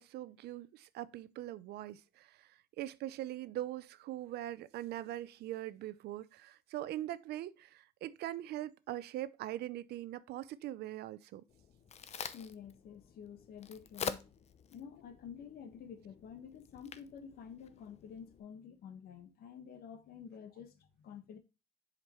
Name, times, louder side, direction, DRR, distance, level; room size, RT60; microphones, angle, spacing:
voice 1, 0.0-11.4, right 14 dB, 75° right, 0.6 m, -42 dB
Crack, 11.5-18.4, left 7 dB, 40° left, 0.7 m, -47 dB
voice 2, 12.3-14.3 14.7-21.4, left 7 dB, 65° left, 1.4 m, -50 dB
7.4 x 5.1 x 3.0 m
cardioid pair, 110°, 17 cm